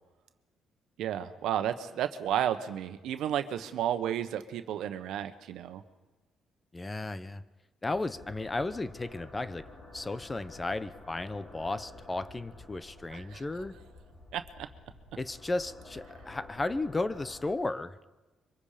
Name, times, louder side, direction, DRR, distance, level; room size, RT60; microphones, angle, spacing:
voice 1, 1.0-5.8 13.1-13.4 14.3-14.4, right 10 dB, 85° right, 9 dB, 1.2 m, -32 dB
voice 2, 6.7-7.4 7.8-9.7 9.9-13.8 15.2-18.0, left 2 dB, 20° left, 14 dB, 0.9 m, -34 dB
sound 1, 7.9-17.5, left 2 dB, 50° left, 5.2 m, -51 dB
26.0 x 24.0 x 5.1 m, 1.2 s
cardioid pair, 90°, 0 cm